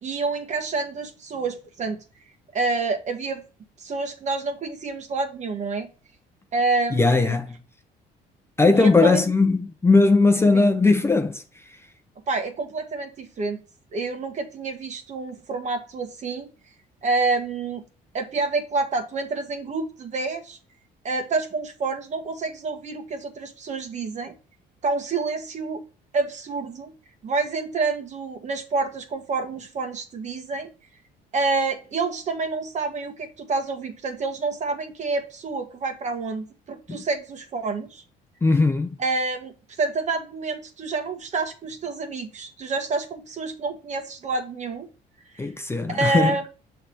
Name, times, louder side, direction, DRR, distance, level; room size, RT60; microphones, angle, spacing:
voice 1, 0.0-2.0 2.5-3.4 3.8-5.9 6.5-7.4 8.7-9.2 10.5-10.7 12.3-13.6 13.9-16.5 17.0-17.8 18.1-20.6 21.0-24.3 24.8-25.8 26.1-26.9 27.2-30.7 31.3-38.0 39.0-44.9 45.3-45.5 45.9-46.5, right 3 dB, 45° right, 1.4 m, -28 dB
voice 2, 6.9-7.5 8.6-11.4 38.4-39.0 45.4-46.4, left 3 dB, 15° left, 0.6 m, -19 dB
6.7 x 3.4 x 4.3 m
cardioid pair, 110°, 17 cm